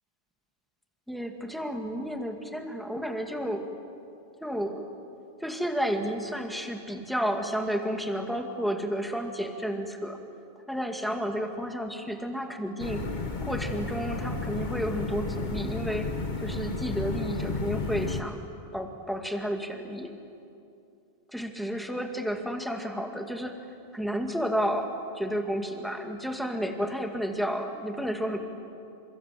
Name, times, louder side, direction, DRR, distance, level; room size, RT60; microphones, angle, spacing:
voice 1, 1.1-3.7 4.4-4.9 5.4-10.2 10.7-13.1 13.4-16.1 16.4-18.4 18.7-20.1 21.3-23.6 23.9-28.4, equal, ahead, 3 dB, 2.3 m, -31 dB
sound 1, 12.8-18.2, left 3 dB, 45° left, 1.5 m, -32 dB
28.5 x 26.5 x 7.9 m, 2.6 s
omnidirectional pair, 1.1 m